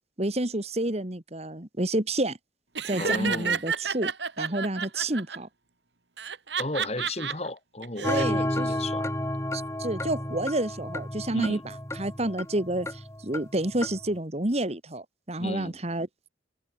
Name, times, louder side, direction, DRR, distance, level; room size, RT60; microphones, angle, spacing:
voice 1, 0.2-2.4 2.8-4.1 4.4-5.5 8.1-8.7 9.5-11.6 12.0-16.3, right 1 dB, 35° right, 1.9 m, -29 dB
Laughter, 2.7-5.4 6.2-7.3 7.8-8.2, right 6 dB, 70° right, 3.1 m, -30 dB
voice 2, 3.0-3.6 6.6-9.1 11.3-11.6 15.4-15.8, left 1 dB, 35° left, 3.1 m, -34 dB
sound 1, 8.0-14.1, left 1 dB, 15° left, 5.3 m, -32 dB
head